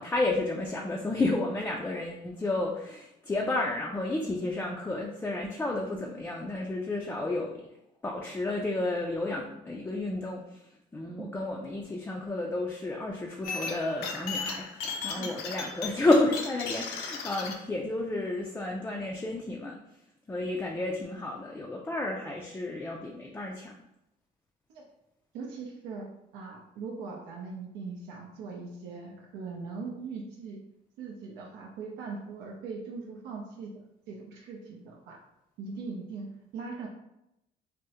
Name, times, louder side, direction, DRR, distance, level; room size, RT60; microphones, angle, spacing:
voice 1, 0.0-7.5 8.0-10.4 10.9-19.8 20.3-23.7, left 2 dB, 10° left, -1 dB, 0.3 m, -31 dB
sound 1, 13.4-17.5, left 5 dB, 75° left, 0.5 m, -36 dB
voice 2, 25.3-30.6 31.0-35.2 35.6-36.9, right 4 dB, 85° right, -1 dB, 0.5 m, -40 dB
3.5 x 2.0 x 2.8 m, 0.85 s
cardioid pair, 110°, 17 cm